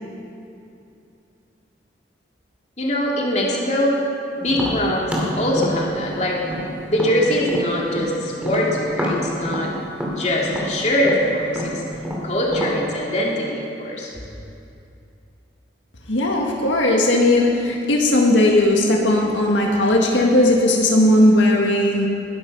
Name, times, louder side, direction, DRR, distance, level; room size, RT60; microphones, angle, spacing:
voice 1, 2.8-4.0 4.4-6.4 6.9-9.7 10.1-11.8 12.2-14.1, equal, 40° left, -3 dB, 2.8 m, -22 dB
Tap, 4.5-8.1 8.4-12.8, equal, 5° right, 2.6 m, -28 dB
voice 2, 16.1-22.1, left 1 dB, 90° left, 0 dB, 1.9 m, -17 dB
21.0 x 12.0 x 5.5 m, 2.7 s
head